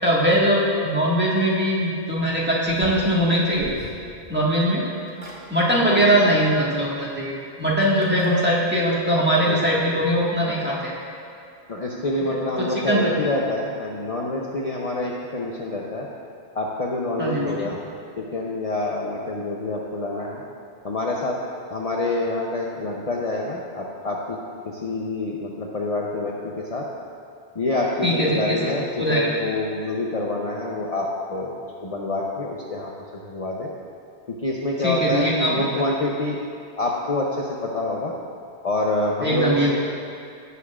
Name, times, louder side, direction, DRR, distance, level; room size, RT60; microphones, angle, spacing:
voice 1, 0.0-3.7 4.3-4.8 5.5-10.9 12.6-13.1 17.2-17.7 28.0-28.6 29.0-29.3 34.8-35.7 39.2-39.7, equal, 10° right, -7 dB, 1.7 m, -21 dB
sound 1, 2.7-4.5 4.9-5.4 6.7-6.8 8.0-8.3, left 1 dB, 40° right, 2.0 m, -36 dB
voice 2, 11.7-16.1 16.5-17.8 18.2-20.4 20.8-21.4 21.7-24.4 24.6-26.9 27.5-31.5 31.8-33.7 34.4-36.4 36.8-38.1 38.6-39.7, left 2 dB, 40° left, -3 dB, 0.8 m, -26 dB
17.5 x 6.9 x 2.5 m, 2.5 s
omnidirectional pair, 1.1 m